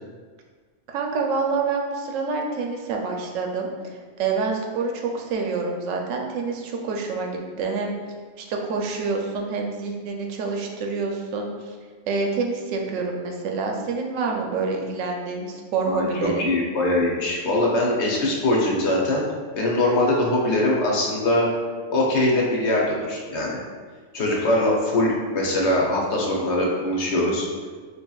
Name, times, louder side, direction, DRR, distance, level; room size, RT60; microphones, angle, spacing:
voice 1, 0.9-3.7 4.2-8.0 8.4-11.8 12.1-16.5, right 4 dB, 80° right, 2 dB, 0.9 m, -27 dB
voice 2, 15.8-19.2 19.5-21.5 21.9-23.6 24.1-27.4, left 1 dB, 65° left, -3 dB, 0.9 m, -22 dB
4.4 x 2.7 x 2.3 m, 1.5 s
omnidirectional pair, 1.3 m